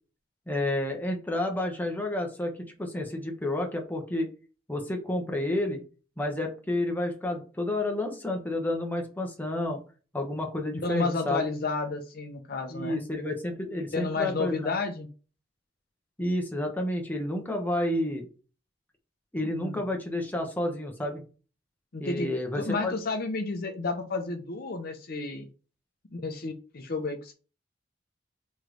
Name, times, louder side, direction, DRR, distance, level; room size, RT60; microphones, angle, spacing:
voice 1, 0.5-4.3 4.7-5.8 6.2-9.8 10.1-11.5 12.7-14.7 16.2-18.2 19.3-21.2 22.0-22.9, left 1 dB, 10° left, 2 dB, 0.8 m, -30 dB
voice 2, 10.8-13.0 13.9-15.1 19.4-19.8 21.9-22.3 22.6-25.5 26.1-27.3, left 3 dB, 55° left, 6 dB, 0.6 m, -31 dB
3.2 x 3.1 x 3.8 m, 0.35 s
head